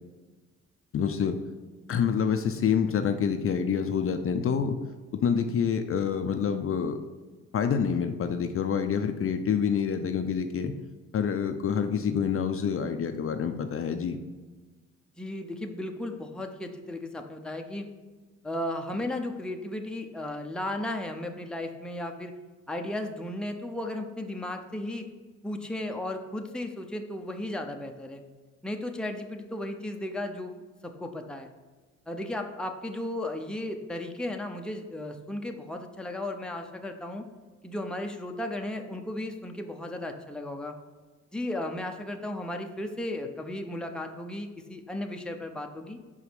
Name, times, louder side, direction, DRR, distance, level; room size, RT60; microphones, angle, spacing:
voice 1, 0.9-1.4 1.9-4.8 5.2-7.0 7.5-10.7 11.1-14.2, left 7 dB, 45° left, 7 dB, 0.6 m, -27 dB
voice 2, 15.2-17.9 18.4-22.3 22.7-25.1 25.4-28.2 28.6-30.6 30.8-31.5 32.1-37.2 37.6-40.7 41.3-46.0, left 1 dB, 5° left, 3 dB, 0.7 m, -35 dB
5.5 x 4.9 x 5.1 m, 1.3 s
cardioid pair, 90°, 30 cm